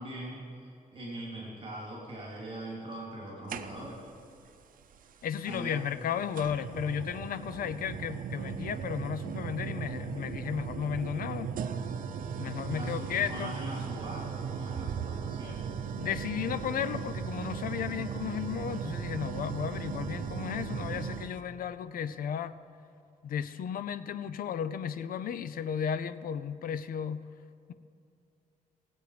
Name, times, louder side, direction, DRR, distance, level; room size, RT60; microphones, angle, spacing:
voice 1, 0.0-4.0 5.5-5.8 12.7-15.7, right 1 dB, 35° right, -3 dB, 3.2 m, -41 dB
sound 1, 3.5-4.1 5.5-5.6 6.3-21.4, right 7 dB, 70° right, 0.7 m, -37 dB
voice 2, 5.2-11.5 12.4-13.6 16.0-22.6 23.2-27.3, left 8 dB, 80° left, 13 dB, 0.6 m, -34 dB
19.5 x 8.3 x 5.0 m, 2.6 s
cardioid pair, 110°, 15 cm